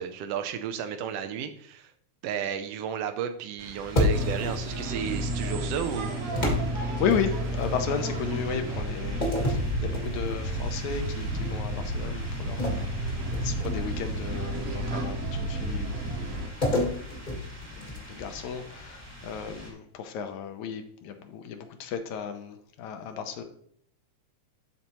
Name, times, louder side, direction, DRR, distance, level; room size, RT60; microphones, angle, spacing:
voice 1, 0.0-1.9 2.2-6.1, right 8 dB, 80° right, 8 dB, 1.4 m, -33 dB
sound 1, 3.6-19.7, equal, 15° right, 1.0 m, -45 dB
sound 2, 3.9-4.6 6.4-7.7 9.2-10.5 11.0-11.3 12.6-14.1 16.6-18.3, left 1 dB, 30° left, 1.0 m, -29 dB
sound 3, 4.1-16.5, right 1 dB, 60° right, 1.9 m, -31 dB
voice 2, 7.0-17.3 17.8-23.4, left 7 dB, 80° left, 6 dB, 2.0 m, -34 dB
12.0 x 4.2 x 3.0 m, 0.65 s
omnidirectional pair, 3.4 m